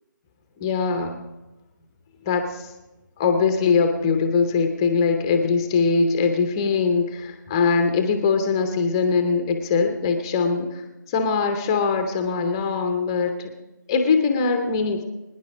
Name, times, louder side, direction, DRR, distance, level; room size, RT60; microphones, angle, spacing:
voice 1, 0.6-1.2 2.3-2.7 3.2-13.5 13.9-15.1, left 5 dB, 10° left, 6 dB, 0.7 m, -22 dB
23.0 x 10.0 x 5.0 m, 1.1 s
figure-of-eight pair, 155°, 11 cm